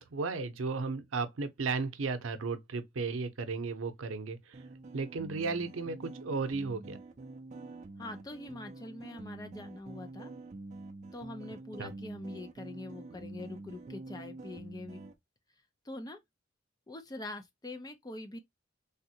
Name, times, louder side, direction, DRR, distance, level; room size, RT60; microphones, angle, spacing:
voice 1, 0.0-4.6 4.9-7.0 11.8-11.9, right 4 dB, 90° right, 0.6 m, -34 dB
sound 1, 4.5-15.1, right 2 dB, 35° right, 0.4 m, -46 dB
voice 2, 8.0-10.3 11.1-15.0 15.8-16.2 16.9-18.4, left 2 dB, 20° left, 0.5 m, -44 dB
3.6 x 2.1 x 2.7 m
head